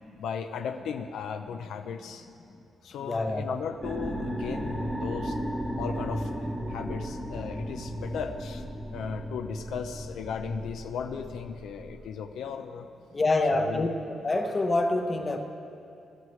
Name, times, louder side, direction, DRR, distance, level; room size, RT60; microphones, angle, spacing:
voice 1, 0.2-2.3 2.8-5.4 5.8-6.3 6.7-8.6 8.9-12.9 13.5-13.9, left 6 dB, 80° left, 6 dB, 0.6 m, -36 dB
voice 2, 3.0-3.5 13.1-13.9 14.2-15.4, left 2 dB, 25° left, 4 dB, 0.9 m, -26 dB
sound 1, 3.8-12.1, equal, 5° right, 0.9 m, -35 dB
21.0 x 12.0 x 3.2 m, 2.7 s
cardioid pair, 155°, 0 cm